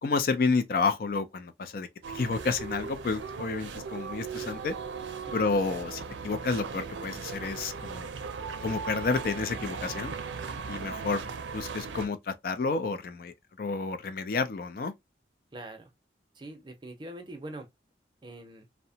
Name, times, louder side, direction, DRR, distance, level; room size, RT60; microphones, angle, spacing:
voice 1, 0.0-4.8 5.3-8.1 8.6-10.1 10.7-14.9, left 4 dB, 50° left, 0.4 m, -30 dB
sound 1, 2.0-12.1, right 5 dB, 85° right, 0.5 m, -38 dB
voice 2, 15.5-15.9 16.3-17.7 18.2-18.7, right 1 dB, 25° right, 0.6 m, -43 dB
2.8 x 2.1 x 2.6 m
head